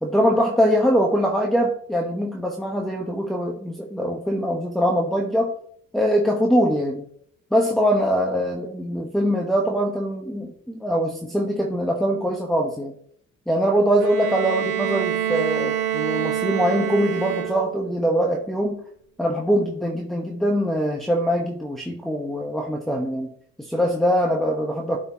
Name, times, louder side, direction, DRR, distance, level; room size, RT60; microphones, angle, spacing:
voice 1, 0.0-5.5 5.9-7.1 7.5-12.9 13.5-18.8 19.2-23.3 23.6-25.0, equal, ahead, 0 dB, 0.9 m, -22 dB
Bowed string instrument, 14.0-18.0, right 10 dB, 80° right, 1.4 m, -26 dB
12.5 x 4.5 x 2.8 m, 0.63 s
cardioid pair, 90°, 30 cm